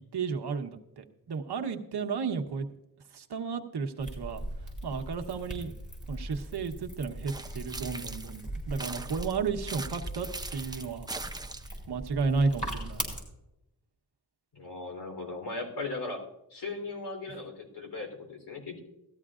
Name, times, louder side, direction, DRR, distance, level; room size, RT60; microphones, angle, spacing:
voice 1, 0.1-2.7 3.1-4.4 4.8-5.7 6.1-11.1 11.9-13.1, right 5 dB, 70° right, 5 dB, 1.1 m, -33 dB
sound 1, 4.0-13.2, right 1 dB, 20° left, 4.9 m, -40 dB
sound 2, 7.3-8.4 8.8-11.8, right 2 dB, 10° right, 0.5 m, -41 dB
voice 2, 14.5-16.3 16.5-18.8, left 3 dB, 70° left, 1 dB, 3.7 m, -38 dB
17.5 x 13.5 x 2.5 m, 0.89 s
wide cardioid pair, 125°, 41 cm